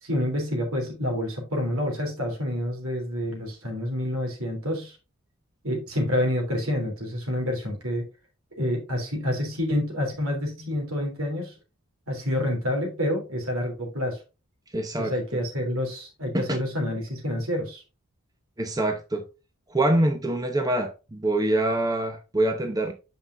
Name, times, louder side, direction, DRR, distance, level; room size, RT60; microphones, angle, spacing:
voice 1, 0.0-5.0 5.6-8.0 8.5-11.5 12.1-14.2 15.0-17.8, left 1 dB, 80° right, 3.0 m, -28 dB
voice 2, 14.7-15.1 16.3-16.5 18.6-19.2 19.7-22.9, right 1 dB, 15° right, 0.7 m, -25 dB
8.7 x 5.4 x 2.5 m
head